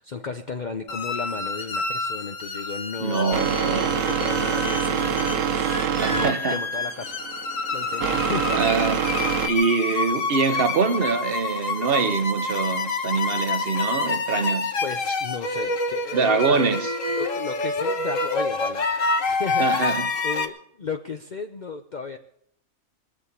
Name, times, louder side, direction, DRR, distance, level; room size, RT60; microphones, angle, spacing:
voice 1, 0.0-7.2 7.7-8.6 14.8-16.6 17.2-22.2, left 4 dB, 40° left, 0.9 m, -34 dB
sound 1, 0.9-20.5, left 3 dB, 75° left, 1.7 m, -28 dB
voice 2, 3.0-3.9 6.0-6.6 8.5-9.0 9.5-14.8 16.1-16.9 19.6-20.1, right 5 dB, 50° right, 1.1 m, -24 dB
sound 2, 3.3-9.5, right 8 dB, 75° right, 1.2 m, -25 dB
22.0 x 7.5 x 8.3 m
omnidirectional pair, 1.4 m